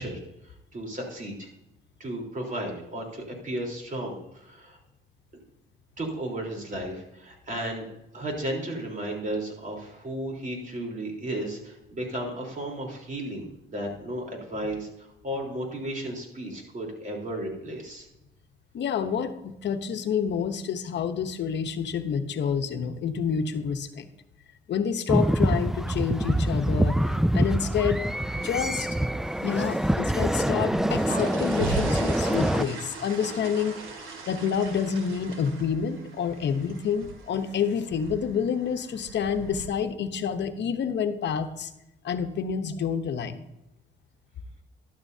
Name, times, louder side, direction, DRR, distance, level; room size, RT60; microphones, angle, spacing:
voice 1, 0.0-1.5 2.0-4.8 6.0-7.9 8.1-18.1, right 1 dB, 40° right, 0 dB, 3.8 m, -34 dB
voice 2, 18.7-24.1 24.7-28.0 28.4-28.9 29.4-33.8 34.3-41.7 42.0-43.4, left 7 dB, 65° left, 8 dB, 1.0 m, -28 dB
sound 1, 25.1-32.6, right 1 dB, ahead, 0.3 m, -25 dB
sound 2, 30.7-39.7, right 4 dB, 85° right, 2.2 m, -38 dB
12.5 x 12.0 x 2.8 m, 0.88 s
cardioid pair, 90°, 20 cm